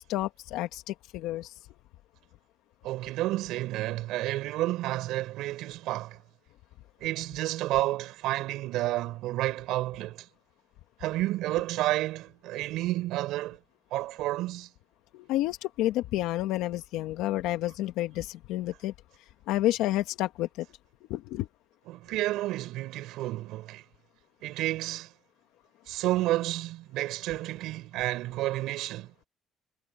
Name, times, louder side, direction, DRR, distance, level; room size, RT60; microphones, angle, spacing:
voice 1, 0.1-1.5 15.1-18.9 19.5-20.7 21.1-21.5, left 15 dB, 85° left, 2.0 m, -30 dB
voice 2, 2.8-6.2 7.0-10.3 11.0-13.6 13.9-14.7 21.9-23.8 24.4-25.1 25.9-29.1, right 16 dB, 80° right, 4.7 m, -30 dB
cardioid pair, 120°, 0 cm